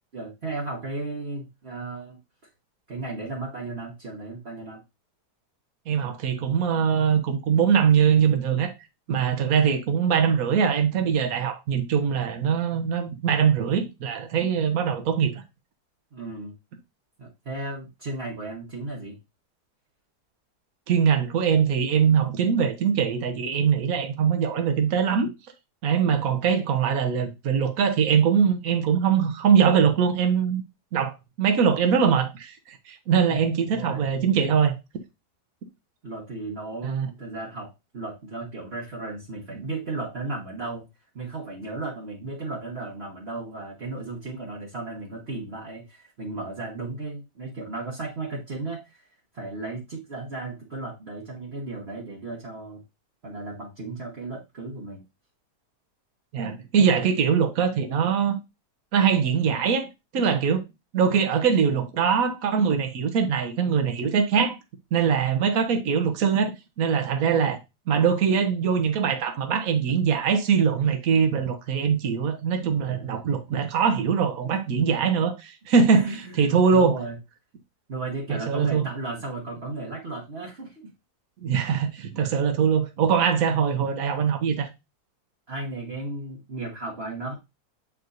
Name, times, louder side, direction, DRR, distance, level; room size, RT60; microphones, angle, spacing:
voice 1, 0.1-2.2 2.9-4.8 16.1-16.5 17.2-19.2 33.3-33.4 33.7-34.0 36.0-40.9 41.1-52.8 53.2-55.0 72.9-73.1 74.5-74.6 75.9-77.2 77.9-80.9 85.5-87.3, right 2 dB, 40° right, 1.4 m, -35 dB
voice 2, 5.9-8.7 9.1-15.3 20.9-25.3 25.8-30.6 30.9-34.8 36.8-37.1 56.3-58.4 58.9-60.6 60.9-64.6 64.9-66.5 66.8-67.6 67.9-77.0 78.3-78.9 81.4-84.7, right 7 dB, 60° right, 1.3 m, -22 dB
7.8 x 4.8 x 2.6 m
omnidirectional pair, 1.7 m